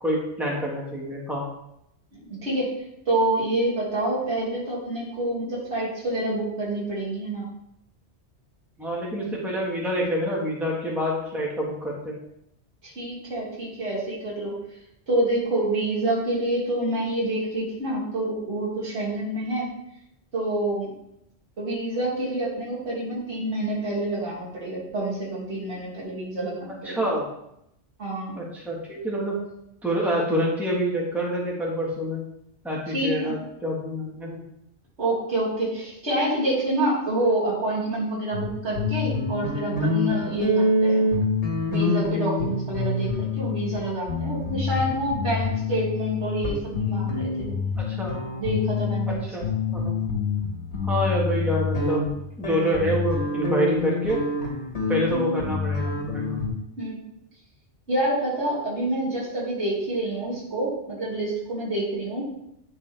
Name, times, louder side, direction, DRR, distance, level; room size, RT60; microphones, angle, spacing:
voice 1, 0.0-1.4 8.8-12.2 26.8-27.3 28.4-29.3 29.8-32.2 32.6-34.4 47.9-48.1 49.3-49.5 49.7-50.0 50.8-52.1 52.4-54.2 54.9-56.4, equal, ahead, -4 dB, 1.2 m, -27 dB
voice 2, 2.1-2.7 3.1-7.5 12.8-14.5 15.1-19.7 20.3-20.9 21.6-27.1 28.0-28.4 32.9-33.3 35.0-41.1 41.7-47.5 48.4-49.3 56.8-57.0 57.9-62.3, right 1 dB, 80° right, -7 dB, 2.5 m, -27 dB
sound 1, 38.3-38.5 38.7-49.1 49.4-56.5, left 3 dB, 75° left, 1.7 m, -26 dB
9.8 x 3.4 x 3.3 m, 0.79 s
omnidirectional pair, 1.2 m